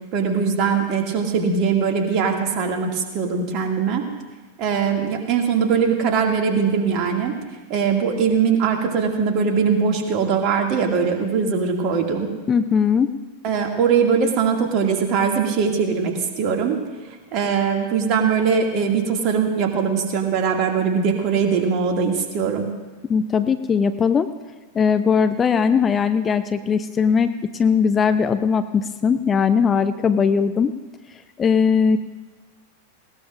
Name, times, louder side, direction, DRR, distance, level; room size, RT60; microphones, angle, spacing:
voice 1, 0.1-4.0 4.6-7.4 7.7-12.3 13.4-16.8 17.3-22.7, right 6 dB, 40° right, 2 dB, 2.3 m, -21 dB
voice 2, 12.5-13.1 23.1-24.3 24.7-30.7 31.4-32.0, left 6 dB, 20° left, 11 dB, 0.5 m, -19 dB
19.5 x 18.0 x 2.6 m, 1.3 s
figure-of-eight pair, 90°, 0 cm